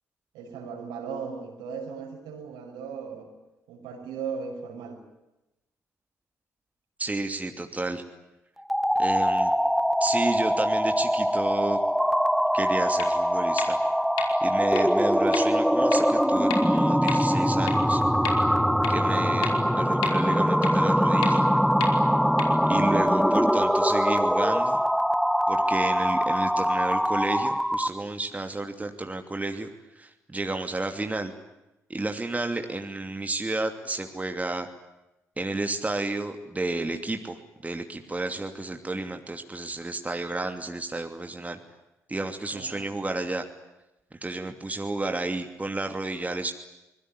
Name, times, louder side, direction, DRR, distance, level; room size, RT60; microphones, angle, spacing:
voice 1, 0.3-3.3 3.7-5.0 23.2-23.5 42.5-42.9, right 6 dB, 70° right, 4 dB, 5.8 m, -37 dB
voice 2, 7.0-8.0 9.0-9.5 10.0-11.8 12.5-13.8 14.4-18.0 18.9-21.4 22.7-24.8 25.5-29.7 29.9-31.3 31.9-34.7 35.4-41.6 42.1-43.4 44.1-46.5, right 2 dB, 20° right, 6 dB, 2.8 m, -31 dB
sound 1, 8.6-28.0, equal, ahead, 1.0 m, -23 dB
sound 2, 13.0-13.1 13.6-13.7 14.2-14.3 14.8-14.9 15.3-15.4 15.9-16.0 16.5-16.6 17.1-17.2 17.7-17.8 18.2-18.3 18.8-18.9 19.4-19.5 20.0-20.1 20.6-20.7 21.2-21.3 21.8-21.9 22.4-22.5, left 8 dB, 75° left, 3.5 m, -31 dB
25.5 x 22.0 x 9.9 m, 0.96 s
figure-of-eight pair, 40°, 8 cm